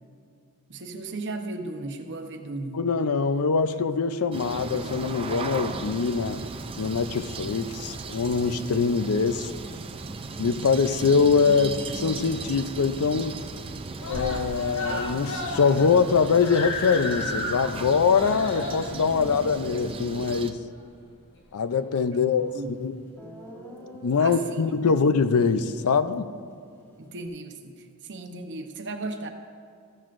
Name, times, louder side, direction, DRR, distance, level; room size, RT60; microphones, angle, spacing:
voice 1, 0.7-2.8 11.6-11.8 22.1-22.9 24.2-24.6 24.9-25.0 27.0-29.3, right 2 dB, 55° right, 0.9 m, -36 dB
voice 2, 2.7-6.4 6.8-9.5 10.4-13.4 14.1-20.6 21.5-22.5 22.8-22.9 24.0-26.3, left 5 dB, 85° left, 0.5 m, -23 dB
sound 1, 4.3-20.5, right 3 dB, 25° right, 0.4 m, -36 dB
Screaming, 11.3-12.0 12.4-12.5 12.8-12.9 13.2-13.7 14.0-20.8 21.7-21.8, left 2 dB, 60° left, 1.2 m, -34 dB
Guitar, 22.6-22.7 23.2-27.3, equal, 10° left, 2.0 m, -47 dB
14.0 x 13.5 x 2.5 m
head